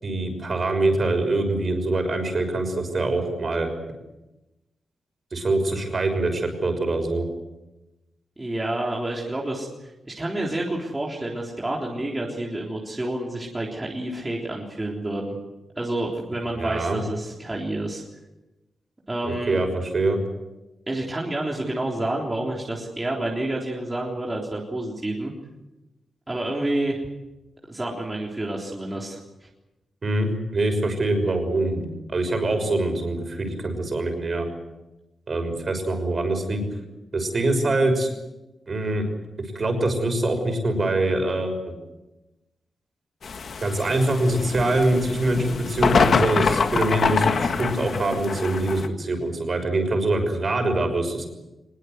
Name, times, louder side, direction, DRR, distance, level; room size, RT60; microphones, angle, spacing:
voice 1, 0.0-3.7 5.3-7.2 16.6-17.0 19.3-20.2 30.0-34.5 35.3-36.6 37.1-38.1 38.7-39.1 39.5-41.7 43.6-51.3, right 2 dB, 40° right, 6 dB, 6.1 m, -24 dB
voice 2, 8.4-15.3 15.8-18.0 19.1-19.6 20.9-25.3 26.3-27.0 27.7-29.5, right 1 dB, 15° right, -3 dB, 3.7 m, -29 dB
sound 1, 43.2-48.9, left 5 dB, 60° left, 1.7 m, -25 dB
23.5 x 21.5 x 8.1 m, 1.0 s
wide cardioid pair, 135°, 0 cm